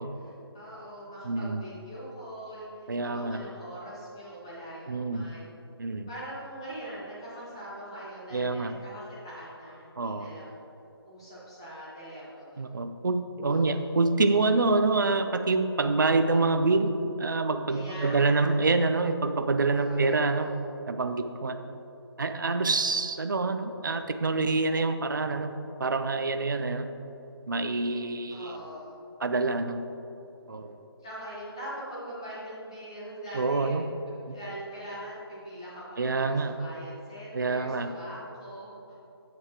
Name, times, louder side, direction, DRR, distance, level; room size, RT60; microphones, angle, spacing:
voice 1, 0.0-5.5 6.1-10.6 11.0-12.8 13.5-13.9 17.7-18.6 19.8-20.6 28.3-29.1 31.0-33.8 34.3-38.9, right 1 dB, 10° left, -9 dB, 1.0 m, -42 dB
voice 2, 1.2-1.6 2.9-3.4 4.9-5.3 5.8-6.1 8.3-8.7 10.0-10.3 12.6-16.9 17.2-20.5 20.9-21.6 22.2-25.5 25.8-26.9 27.5-28.6 29.2-29.8 30.5-30.8 33.3-33.9 34.3-34.4 36.0-36.5 37.3-37.9, right 3 dB, 50° right, 8 dB, 0.4 m, -26 dB
8.0 x 7.8 x 2.9 m, 2.9 s
figure-of-eight pair, 180°, 14 cm